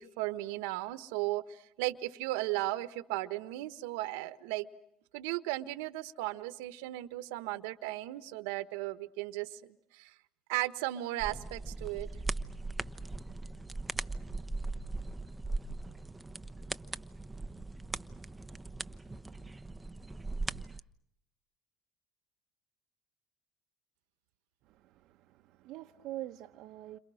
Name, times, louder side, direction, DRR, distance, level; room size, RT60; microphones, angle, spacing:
voice 1, 0.0-4.7 5.1-10.1 10.5-12.1, right 17 dB, 80° right, 1.3 m, -36 dB
sound 1, 11.2-20.8, right 2 dB, 10° right, 1.0 m, -39 dB
voice 2, 24.7-27.0, right 15 dB, 65° right, 1.0 m, -45 dB
30.0 x 27.0 x 6.4 m
supercardioid pair, 85°, 0 cm